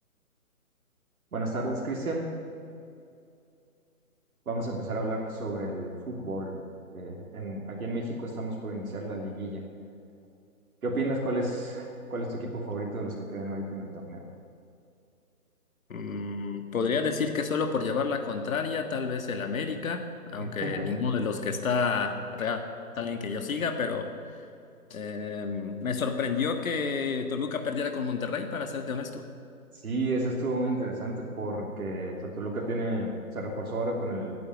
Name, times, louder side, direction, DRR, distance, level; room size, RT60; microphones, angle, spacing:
voice 1, 1.3-2.3 4.5-6.6 6.9-9.6 10.8-14.2 20.4-21.0 29.8-34.3, right 1 dB, 75° right, -1 dB, 3.0 m, -32 dB
voice 2, 15.9-22.6 22.9-24.1 24.9-29.2, left 5 dB, 65° left, 6 dB, 1.7 m, -30 dB
15.0 x 10.0 x 9.3 m, 2.5 s
hypercardioid pair, 155°, 44 cm